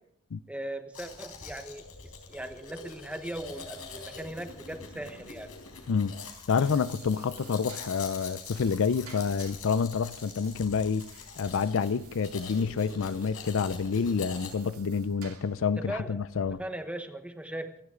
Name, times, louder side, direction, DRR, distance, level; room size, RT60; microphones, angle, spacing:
voice 1, 0.5-5.5 15.8-16.2 16.5-17.8, right 1 dB, 5° right, 1.1 m, -39 dB
Domestic sounds home sounds, 0.9-14.5, left 5 dB, 80° left, 4.0 m, -44 dB
sound 1, 6.4-15.7, right 9 dB, 80° right, 2.5 m, -54 dB
voice 2, 6.5-11.0 11.4-16.6, left 5 dB, 60° left, 0.4 m, -28 dB
26.5 x 11.5 x 3.8 m
head